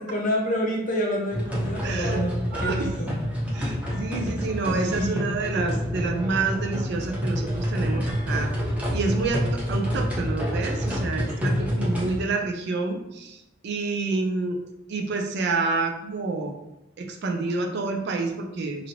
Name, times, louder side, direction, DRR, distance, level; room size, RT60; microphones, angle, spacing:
voice 1, 0.0-2.3 2.6-3.1 4.7-5.2, equal, 40° left, -1 dB, 0.7 m, -28 dB
sound 1, 1.3-12.2, equal, 5° right, 0.7 m, -28 dB
voice 2, 1.8-2.2 2.5-2.9 3.5-8.5 8.9-13.4 13.6-14.6 14.9-16.5 17.0-18.9, right 3 dB, 55° right, 4 dB, 0.4 m, -28 dB
3.0 x 2.6 x 2.8 m, 0.90 s
head